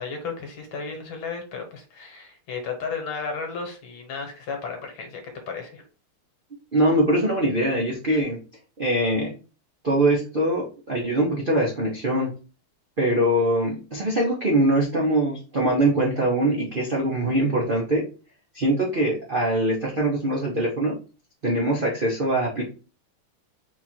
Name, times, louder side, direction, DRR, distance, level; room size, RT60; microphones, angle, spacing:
voice 1, 0.0-5.2 5.5-5.8, left 5 dB, 70° left, 4 dB, 1.8 m, -33 dB
voice 2, 6.7-8.4 8.8-9.4 9.8-12.3 13.0-18.0 18.5-21.0 21.4-22.7, right 1 dB, 55° right, -3 dB, 0.5 m, -23 dB
4.4 x 2.4 x 4.4 m, 0.35 s
omnidirectional pair, 2.4 m